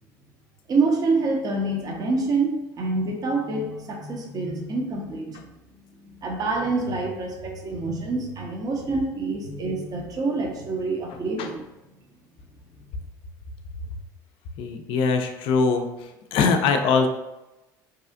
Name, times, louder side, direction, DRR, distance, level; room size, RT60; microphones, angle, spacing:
voice 1, 0.7-5.4 6.2-11.6, right 3 dB, 40° right, 1 dB, 0.6 m, -26 dB
voice 2, 14.6-15.9 16.3-17.1, left 5 dB, 60° left, 5 dB, 0.4 m, -21 dB
2.7 x 2.3 x 2.4 m, 0.99 s
hypercardioid pair, 70°, 10 cm